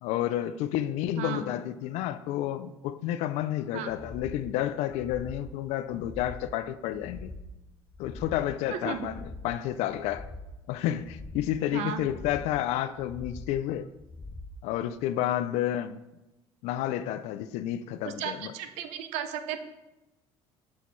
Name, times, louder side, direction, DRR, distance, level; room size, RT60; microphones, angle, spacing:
voice 1, 0.0-7.3 8.0-10.3 10.7-13.9 14.6-16.0 16.6-18.5, left 12 dB, 75° left, 0.4 m, -30 dB
voice 2, 1.2-1.5 3.7-3.9 8.7-9.1 11.7-12.0 18.0-19.6, right 9 dB, 80° right, 0.7 m, -34 dB
sound 1, 3.9-4.4 4.9-5.4 5.9-6.5 6.9-7.5 7.9-8.5 8.9-9.5 9.9-10.5 10.9-11.5 11.9-12.5 12.9-13.5 13.9-14.5 15.0-15.1, left 2 dB, 15° left, 0.5 m, -43 dB
6.9 x 6.4 x 3.2 m
cardioid pair, 150°, 11 cm